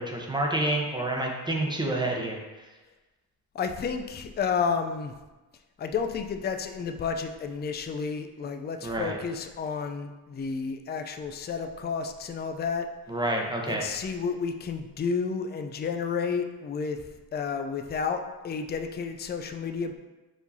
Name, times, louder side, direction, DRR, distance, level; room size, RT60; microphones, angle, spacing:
voice 1, 0.0-2.4 8.8-9.2 13.1-13.9, right 1 dB, 10° right, -1 dB, 0.8 m, -28 dB
voice 2, 3.5-5.1 5.8-12.9 13.7-17.0 17.3-20.0, left 5 dB, 25° left, 6 dB, 0.4 m, -31 dB
4.9 x 3.8 x 2.7 m, 1.2 s
cardioid pair, 70°, 40 cm